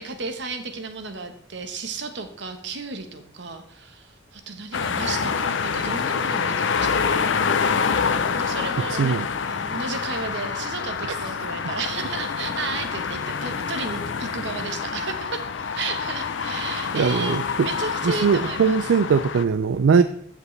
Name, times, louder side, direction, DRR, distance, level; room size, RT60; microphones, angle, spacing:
voice 1, 0.0-7.3 8.3-9.2 9.5-18.9, right 4 dB, 65° right, 7 dB, 1.0 m, -33 dB
sound 1, 4.7-19.4, left 5 dB, 70° left, 0.5 m, -26 dB
voice 2, 8.9-9.3 11.1-11.2 16.9-17.7 18.0-20.0, right 5 dB, 80° right, 11 dB, 0.4 m, -20 dB
14.5 x 5.1 x 3.2 m, 0.68 s
head